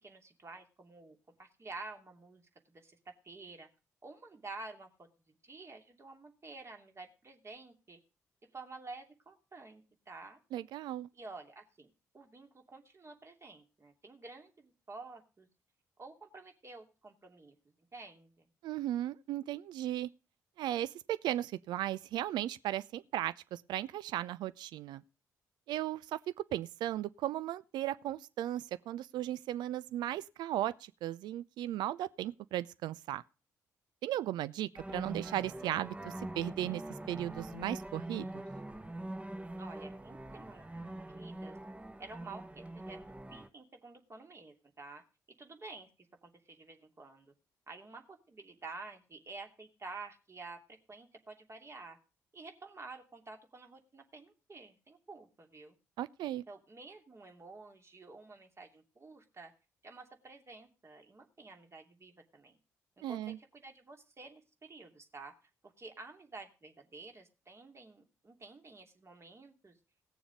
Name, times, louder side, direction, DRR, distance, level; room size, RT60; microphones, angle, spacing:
voice 1, 0.0-2.4 2.7-3.7 4.0-8.0 8.5-10.4 11.1-15.5 16.0-17.6 17.9-18.5 39.6-41.6 42.0-43.0 43.3-45.0 45.4-45.9 46.2-47.3 47.7-50.6 50.9-52.0 52.3-55.8 56.5-59.5 59.8-62.6 63.0-65.4 65.6-69.7, right 3 dB, 35° right, 2.8 m, -50 dB
voice 2, 10.5-11.1 18.6-20.1 20.6-25.0 25.7-26.2 26.5-33.2 34.0-36.8 37.1-38.4 56.0-56.4 63.0-63.4, right 13 dB, 65° right, 0.6 m, -36 dB
sound 1, 34.8-43.5, right 1 dB, 15° right, 1.4 m, -43 dB
18.0 x 7.0 x 5.2 m
figure-of-eight pair, 40°, 8 cm